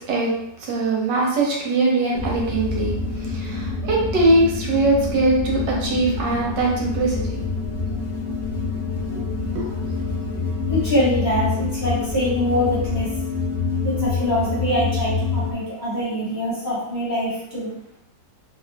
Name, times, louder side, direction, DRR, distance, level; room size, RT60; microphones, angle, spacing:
voice 1, 0.6-7.2 9.1-9.2 9.5-10.0, right 2 dB, 75° right, -2 dB, 1.4 m, -21 dB
sound 1, 2.1-15.5, left 4 dB, 45° left, 0.4 m, -26 dB
voice 2, 10.7-13.1 13.8-17.7, equal, 30° left, -9 dB, 1.2 m, -24 dB
3.0 x 2.7 x 3.3 m, 0.79 s
omnidirectional pair, 1.9 m